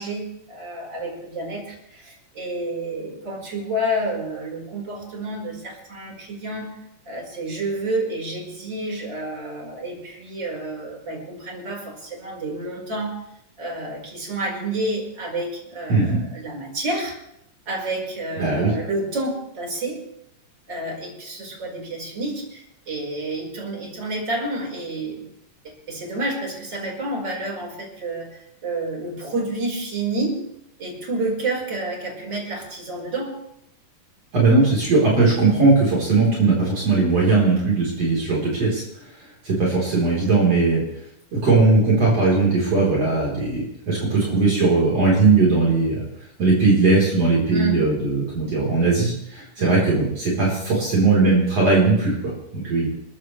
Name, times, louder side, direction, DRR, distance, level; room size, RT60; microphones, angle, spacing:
voice 1, 0.0-6.8 7.1-13.1 13.6-17.1 17.7-20.0 20.7-25.2 25.6-30.4 30.8-33.4 47.5-47.8 49.6-49.8, right 2 dB, 30° right, -1 dB, 5.2 m, -29 dB
voice 2, 15.9-16.2 18.4-18.7 34.3-38.8 39.4-40.8 41.3-46.0 46.4-52.9, right 3 dB, 50° right, -5 dB, 4.8 m, -19 dB
29.5 x 14.0 x 3.3 m, 0.76 s
omnidirectional pair, 3.8 m